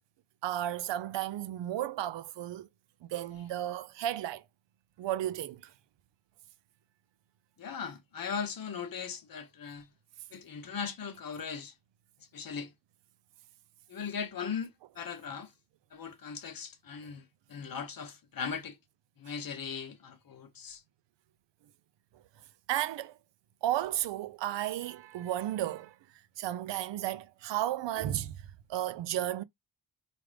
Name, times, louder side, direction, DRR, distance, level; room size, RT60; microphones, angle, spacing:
voice 1, 0.4-2.7 3.0-4.4 5.0-5.7 22.7-23.2 23.6-26.0 26.4-29.4, right 12 dB, 80° right, 0.5 m, -33 dB
voice 2, 7.6-9.9 10.3-11.7 12.3-12.7 13.9-15.5 15.9-18.8 19.2-20.8, left 6 dB, 50° left, 0.9 m, -39 dB
4.9 x 2.4 x 3.3 m
wide cardioid pair, 165°, 43 cm